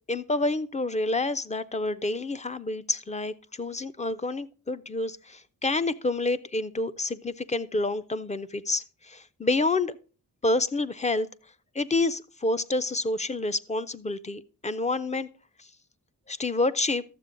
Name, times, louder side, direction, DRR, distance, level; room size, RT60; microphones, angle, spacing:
voice 1, 0.1-10.0 10.4-11.3 11.7-15.3 15.6-15.7 16.3-17.0, left 2 dB, 20° left, 0.4 m, -28 dB
12.0 x 7.4 x 3.7 m
wide cardioid pair, 115°, 35 cm